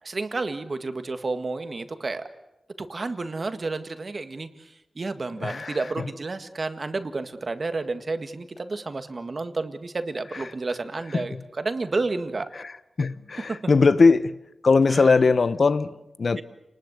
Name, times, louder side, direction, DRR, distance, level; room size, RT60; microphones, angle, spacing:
voice 1, 0.0-2.2 2.8-12.5 13.5-13.6 14.9-15.1 16.4-16.5, right 3 dB, 50° right, 1.8 m, -31 dB
voice 2, 5.4-5.8 11.1-11.3 13.0-14.4 14.6-16.4, left 4 dB, 60° left, 0.9 m, -20 dB
29.5 x 20.0 x 8.2 m
wide cardioid pair, 75°, 0 cm